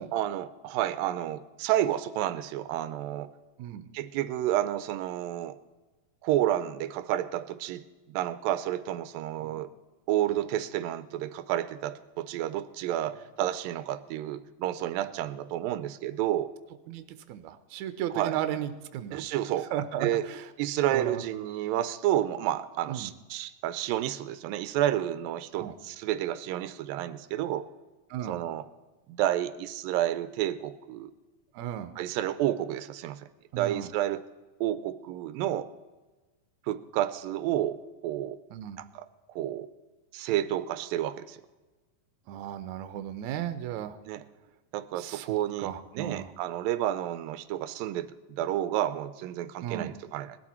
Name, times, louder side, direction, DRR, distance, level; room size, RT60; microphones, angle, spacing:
voice 1, 0.1-3.3 3.9-5.6 6.2-7.8 8.1-9.7 10.1-16.5 18.1-18.4 19.1-20.3 20.6-27.7 28.3-28.7 29.1-31.1 32.0-33.3 33.5-34.2 34.6-35.7 36.7-38.4 38.8-39.7 40.1-41.4 44.1-44.2 44.7-50.4, right 12 dB, 90° right, 13 dB, 2.4 m, -30 dB
voice 2, 16.9-19.2 19.7-20.4 20.9-21.2 22.9-23.1 25.6-25.7 28.1-28.4 31.5-31.9 33.5-33.9 38.5-38.8 42.3-44.0 45.0-46.3 49.6-49.9, right 11 dB, 75° right, 9 dB, 1.9 m, -35 dB
19.0 x 12.0 x 4.4 m, 1.2 s
omnidirectional pair, 4.0 m